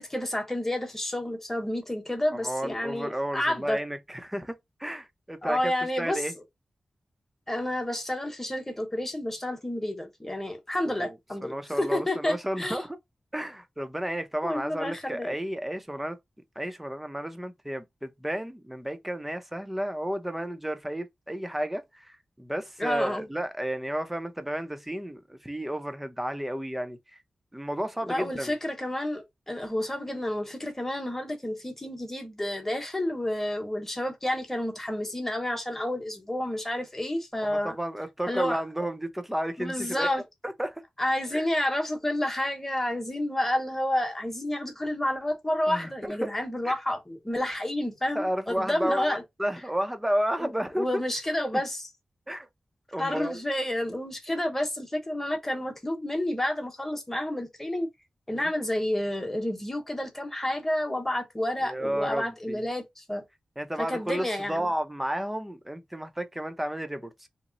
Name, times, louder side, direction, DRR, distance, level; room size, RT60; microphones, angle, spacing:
voice 1, 0.0-3.8 5.4-6.2 7.5-12.8 14.4-15.4 22.8-23.3 28.0-37.8 38.3-38.6 39.6-40.2 41.0-49.2 50.4-51.8 53.0-57.9 58.3-63.2 63.9-64.7, left 1 dB, 15° left, 1.0 m, -30 dB
voice 2, 2.3-5.7 6.0-6.3 10.8-11.2 11.4-13.0 13.3-16.2 16.6-27.2 27.5-28.5 37.4-40.1 40.4-40.8 41.3-41.5 45.7-46.3 46.6-46.7 48.1-50.9 52.3-52.5 52.9-53.4 58.3-58.5 61.6-62.6 63.6-67.3, right 1 dB, 5° right, 0.5 m, -32 dB
2.9 x 2.0 x 3.8 m
wide cardioid pair, 115°, 2 cm